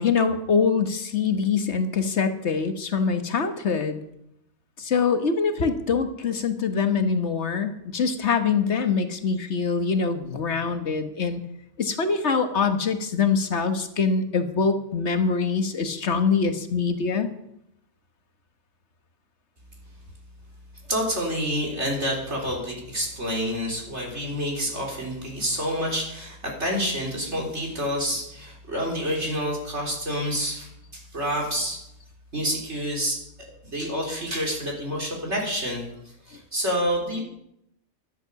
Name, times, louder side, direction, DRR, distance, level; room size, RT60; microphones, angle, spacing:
voice 1, 0.0-4.0 4.8-11.4 11.8-17.3, left 5 dB, 55° left, 8 dB, 1.6 m, -24 dB
voice 2, 20.8-31.8 32.3-33.2 33.6-35.9 36.3-37.2, equal, 50° right, -1 dB, 4.3 m, -28 dB
13.5 x 12.0 x 7.0 m, 0.79 s
omnidirectional pair, 1.5 m